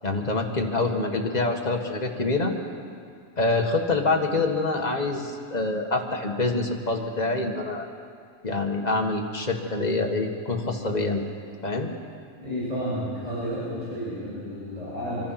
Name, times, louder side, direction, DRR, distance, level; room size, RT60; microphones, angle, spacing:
voice 1, 0.0-2.5 3.4-7.9 8.4-11.2 11.6-11.9, left 3 dB, 20° left, 1 dB, 1.3 m, -26 dB
voice 2, 12.4-15.3, equal, 10° right, -7 dB, 7.0 m, -31 dB
25.0 x 24.5 x 6.0 m, 2.3 s
omnidirectional pair, 3.3 m